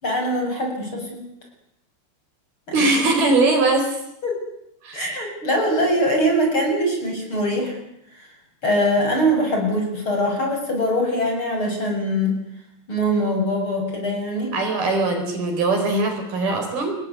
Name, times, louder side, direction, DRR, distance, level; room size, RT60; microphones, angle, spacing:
voice 1, 0.0-1.2 2.7-2.8 4.2-4.4 4.9-7.8 8.2-8.3 8.6-12.3 12.9-14.5, equal, 25° left, 2 dB, 7.8 m, -22 dB
voice 2, 2.7-4.0 4.8-5.0 14.5-17.0, right 3 dB, 50° right, 4 dB, 6.0 m, -21 dB
29.0 x 20.0 x 9.6 m, 0.79 s
omnidirectional pair, 5.5 m